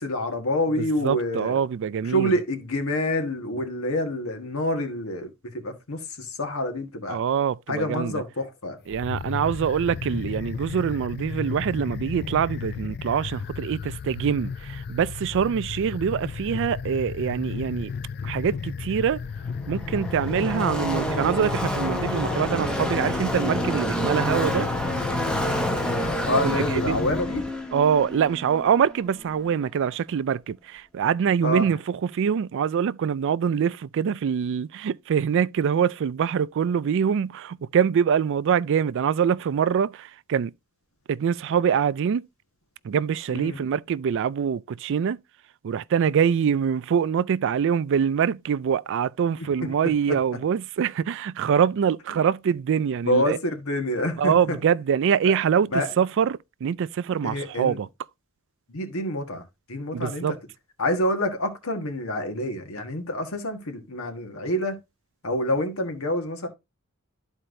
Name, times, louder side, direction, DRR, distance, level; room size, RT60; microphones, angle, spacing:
voice 1, 0.0-1.6 2.0-7.2 7.7-8.8 26.3-27.5 31.4-31.7 43.3-43.6 49.4-50.2 53.1-54.6 55.2-55.3 55.7-55.9 57.2-57.8 58.7-59.4 59.7-60.4 60.8-64.8 65.2-66.5, left 1 dB, 75° left, 1.5 m, -27 dB
voice 2, 0.8-2.4 7.1-8.2 8.9-17.9 18.2-19.2 19.7-24.7 26.4-27.0 27.7-40.5 41.1-42.2 42.8-45.2 45.6-53.4 54.2-57.9 59.9-60.3, right 7 dB, 60° right, 0.3 m, -24 dB
sound 1, 8.9-27.2, left 5 dB, 50° left, 0.4 m, -34 dB
Car passing by / Race car auto racing, 19.2-29.5, equal, 5° left, 1.0 m, -29 dB
13.0 x 4.4 x 2.6 m
head